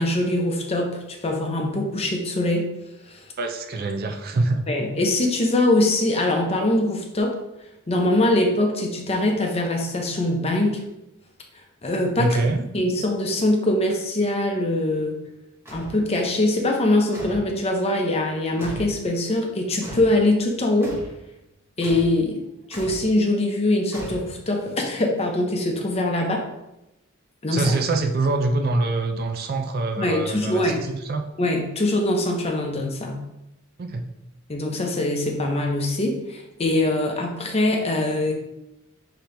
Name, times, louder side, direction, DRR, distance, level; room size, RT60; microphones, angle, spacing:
voice 1, 0.0-2.7 3.1-3.2 4.7-7.4 7.9-10.8 11.8-12.4 12.7-15.2 15.7-20.9 21.8-22.4 22.7-26.4 27.4-27.8 30.0-30.8 31.4-33.2 34.5-38.3, left 1 dB, 30° left, 2 dB, 0.7 m, -23 dB
voice 2, 3.4-4.6 12.2-12.6 26.2-26.3 27.5-31.2 33.8-34.1, right 2 dB, 45° right, 5 dB, 0.4 m, -24 dB
sound 1, 15.7-16.0 17.1-17.5 18.6-19.0 19.8-20.2 20.8-21.2 21.8-22.2 22.7-23.1 23.9-24.6, equal, 10° right, 1.2 m, -37 dB
5.3 x 2.9 x 3.3 m, 0.90 s
head